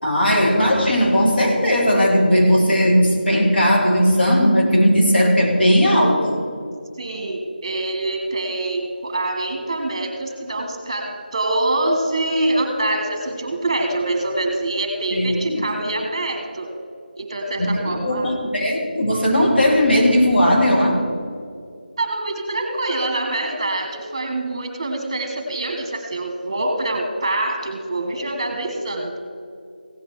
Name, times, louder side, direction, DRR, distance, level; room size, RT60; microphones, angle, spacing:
voice 1, 0.0-6.4 15.1-15.6 17.6-21.0, equal, 80° left, -2 dB, 3.6 m, -17 dB
voice 2, 6.9-16.7 17.2-18.3 22.0-29.2, right 2 dB, 30° right, 4 dB, 1.3 m, -25 dB
16.0 x 8.4 x 4.7 m, 2.4 s
figure-of-eight pair, 175°, 5 cm